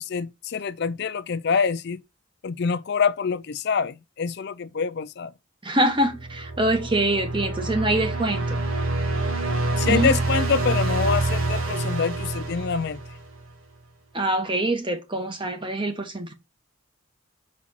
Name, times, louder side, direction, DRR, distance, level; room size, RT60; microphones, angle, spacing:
voice 1, 0.0-2.0 2.4-5.3 9.8-13.0, left 5 dB, 55° left, 0.4 m, -25 dB
voice 2, 5.6-8.6 9.9-10.1 14.1-16.3, right 1 dB, 25° right, 1.1 m, -24 dB
sound 1, 6.1-13.4, right 2 dB, 85° right, 1.8 m, -27 dB
6.1 x 4.2 x 4.1 m
head